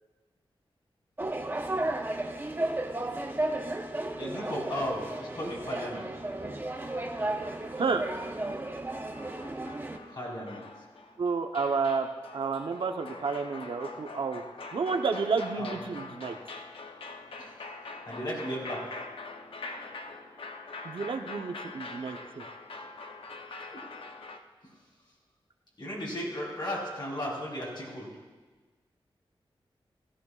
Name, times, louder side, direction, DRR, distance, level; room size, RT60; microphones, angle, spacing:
sound 1, 1.2-10.0, right 2 dB, 20° right, 0.9 m, -34 dB
voice 1, 4.2-6.0 10.1-10.6 15.6-15.7 17.4-17.5 18.1-18.8 23.7-23.8 25.8-28.1, equal, 55° left, -4 dB, 4.4 m, -35 dB
sound 2, 5.4-24.4, left 3 dB, 75° left, 0.8 m, -45 dB
voice 2, 11.2-12.1 12.3-14.4 14.7-16.4 20.8-22.5, right 5 dB, 70° right, 5 dB, 0.9 m, -30 dB
16.0 x 15.0 x 2.4 m, 1.3 s
wide cardioid pair, 95°, 9 cm